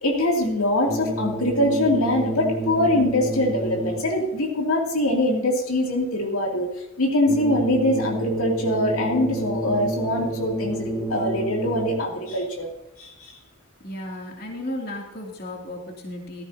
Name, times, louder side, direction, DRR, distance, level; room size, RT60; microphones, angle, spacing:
voice 1, 0.0-6.7 7.0-12.7 13.0-13.4, left 1 dB, 90° left, 0 dB, 2.6 m, -23 dB
sound 1, 0.8-4.3 7.2-12.3, right 1 dB, 5° left, 2.0 m, -29 dB
voice 2, 13.8-16.4, left 1 dB, 45° left, -1 dB, 2.7 m, -34 dB
14.5 x 14.5 x 2.8 m, 0.94 s
head